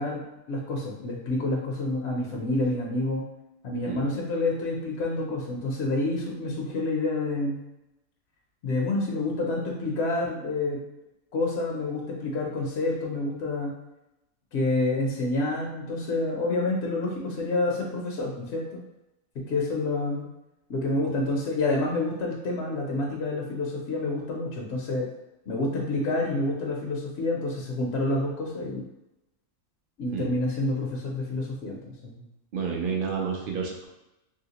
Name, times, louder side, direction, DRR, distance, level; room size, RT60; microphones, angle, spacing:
voice 1, 0.0-3.3 3.6-7.6 8.6-10.8 11.3-13.7 14.5-18.8 19.4-20.3 20.7-25.1 25.5-28.8 30.0-32.2, left 2 dB, 65° left, -2 dB, 0.8 m, -28 dB
voice 2, 32.5-33.8, right 6 dB, 55° right, -1 dB, 0.6 m, -30 dB
2.9 x 2.8 x 2.8 m, 0.91 s
omnidirectional pair, 1.4 m